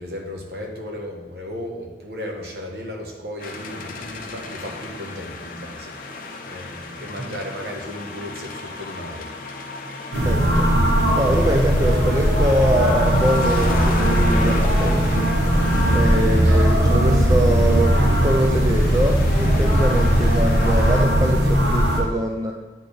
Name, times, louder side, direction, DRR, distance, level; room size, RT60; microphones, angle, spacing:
voice 1, 0.0-9.3, left 1 dB, 65° right, 0 dB, 1.2 m, -35 dB
sound 1, 3.4-21.1, left 3 dB, 50° left, 0.6 m, -34 dB
sound 2, 10.1-22.0, equal, 85° right, 1.1 m, -18 dB
voice 2, 10.2-10.7 11.1-15.3 15.9-22.5, right 1 dB, 20° right, 1 dB, 0.4 m, -23 dB
8.9 x 4.3 x 3.3 m, 1.3 s
head